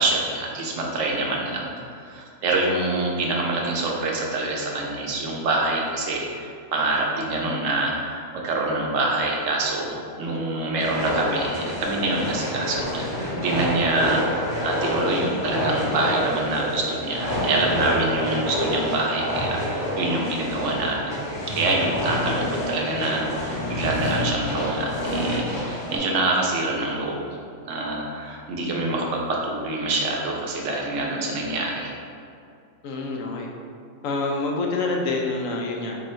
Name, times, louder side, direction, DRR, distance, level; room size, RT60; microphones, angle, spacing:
voice 1, 0.0-21.2 21.5-27.2 27.7-31.9, right 2 dB, 75° right, -1 dB, 1.1 m, -26 dB
sound 1, 10.8-26.0, left 1 dB, 65° left, 1.3 m, -28 dB
voice 2, 32.8-33.5 34.0-36.0, left 3 dB, 85° left, 0 dB, 1.0 m, -26 dB
4.4 x 2.6 x 4.2 m, 2.4 s
omnidirectional pair, 1.3 m